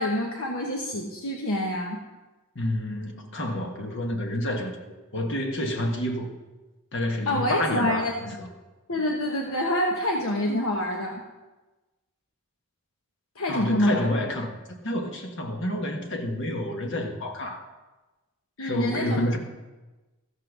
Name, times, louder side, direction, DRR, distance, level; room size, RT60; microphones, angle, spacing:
voice 1, 0.0-2.0 7.3-8.3 8.9-11.2 13.4-14.0 18.6-19.3, left 1 dB, 75° left, 0 dB, 1.1 m, -26 dB
voice 2, 2.5-4.8 5.1-6.3 6.9-8.1 8.4-8.5 13.5-17.6 18.6-19.4, left 1 dB, 55° left, 3 dB, 1.5 m, -29 dB
14.5 x 5.8 x 6.3 m, 1.1 s
head